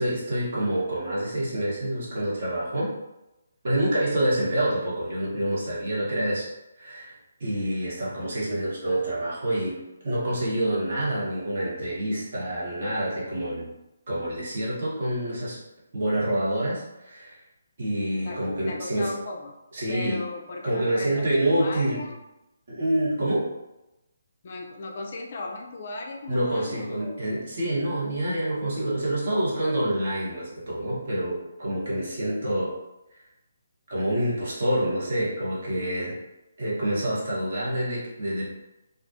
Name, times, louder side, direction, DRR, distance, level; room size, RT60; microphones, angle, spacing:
voice 1, 0.0-2.9 3.6-6.5 6.8-7.1 7.4-9.8 10.0-13.7 14.1-15.6 15.9-17.4 17.8-19.1 19.7-20.2 20.6-22.1 22.7-23.5 26.3-32.7 33.9-36.2 36.6-38.4, right 1 dB, 50° right, -7 dB, 1.0 m, -27 dB
voice 2, 18.2-19.6 19.9-22.2 24.4-27.2, left 2 dB, 45° left, 1 dB, 0.3 m, -37 dB
2.3 x 2.1 x 2.6 m, 0.95 s
figure-of-eight pair, 140°, 0 cm